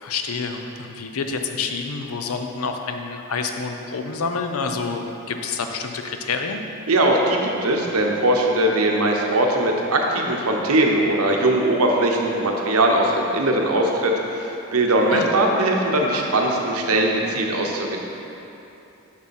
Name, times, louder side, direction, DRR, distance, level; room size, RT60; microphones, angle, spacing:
voice 1, 0.0-6.6 15.1-15.3, left 4 dB, 80° left, 5 dB, 0.6 m, -28 dB
voice 2, 6.9-18.0, right 1 dB, 80° right, 1 dB, 0.9 m, -20 dB
7.3 x 6.3 x 4.2 m, 2.9 s
head